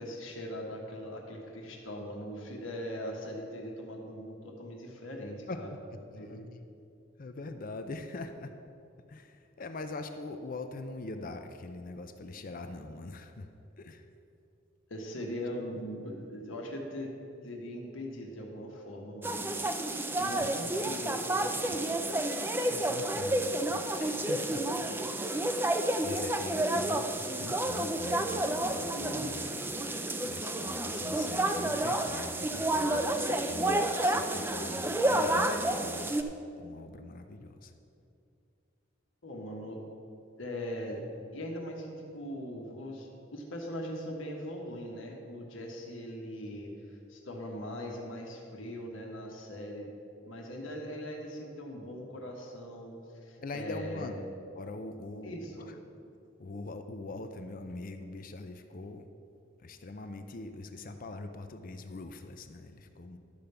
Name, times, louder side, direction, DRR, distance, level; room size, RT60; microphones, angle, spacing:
voice 1, 0.0-5.7 6.2-6.5 14.9-17.1 17.4-19.5 20.2-21.2 24.8-25.2 26.7-26.8 28.9-29.4 39.2-39.8 40.4-41.0 41.3-49.9 50.2-54.3 55.2-55.7, equal, 80° left, 0 dB, 1.5 m, -40 dB
voice 2, 5.5-6.6 7.2-8.5 9.1-13.5 13.8-14.1 20.1-20.5 21.6-21.8 22.7-23.6 24.0-24.6 26.0-27.1 27.4-29.7 30.2-36.2 36.6-37.7 53.4-54.1 54.6-55.8 56.4-59.1 59.6-63.2, left 2 dB, 45° left, 7 dB, 0.5 m, -43 dB
sound 1, 19.2-36.2, right 1 dB, 10° right, 0.4 m, -30 dB
12.0 x 5.2 x 6.9 m, 2.6 s
head